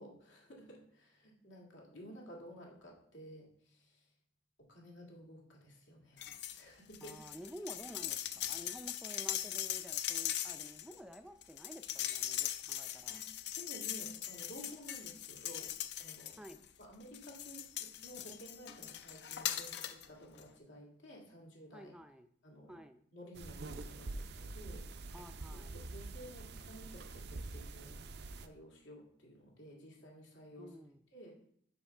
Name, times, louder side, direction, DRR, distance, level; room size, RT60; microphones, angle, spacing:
voice 1, 0.0-4.1 4.6-6.3 6.5-7.1 13.1-13.2 13.5-15.7 16.0-16.3 16.8-21.9 22.4-22.8 23.1-25.2 25.7-28.0 28.3-30.8 31.1-31.5, equal, 85° left, -1 dB, 2.2 m, -53 dB
sound 1, 6.2-6.6 6.9-16.7 17.1-20.1 20.4-20.5, left 11 dB, 60° left, 0.5 m, -40 dB
voice 2, 7.0-13.2 16.4-16.6 21.7-22.3 22.7-23.0 25.1-25.7 30.6-31.0, equal, 5° right, 9 dB, 0.4 m, -51 dB
sound 2, 23.3-28.5, right 2 dB, 60° right, 0.5 m, -46 dB
5.7 x 5.1 x 5.4 m, 0.64 s
head